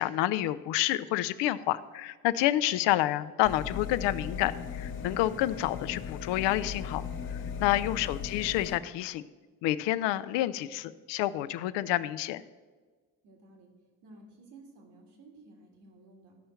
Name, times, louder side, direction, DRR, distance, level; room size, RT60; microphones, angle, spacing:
voice 1, 0.0-7.0 7.3-9.2 9.6-12.4, left 14 dB, 80° left, 14 dB, 0.6 m, -29 dB
sound 1, 3.4-8.8, left 6 dB, 60° left, 1.2 m, -38 dB
voice 2, 8.0-8.4 13.2-13.7 14.0-16.4, right 2 dB, 70° right, 1 dB, 2.0 m, -54 dB
14.0 x 5.5 x 4.4 m, 1.4 s
hypercardioid pair, 55°, 43 cm